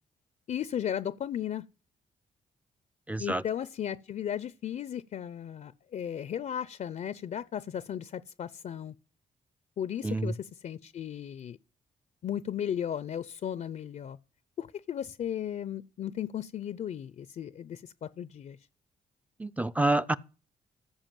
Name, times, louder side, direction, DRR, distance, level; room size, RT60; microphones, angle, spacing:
voice 1, 0.5-1.6 3.2-8.9 9.8-11.6 12.2-14.2 14.6-18.6, left 9 dB, 55° left, 0.5 m, -35 dB
voice 2, 3.1-3.4 10.0-10.3 19.4-20.2, right 2 dB, 10° right, 0.5 m, -27 dB
14.5 x 5.1 x 7.4 m
cardioid pair, 80°, 15 cm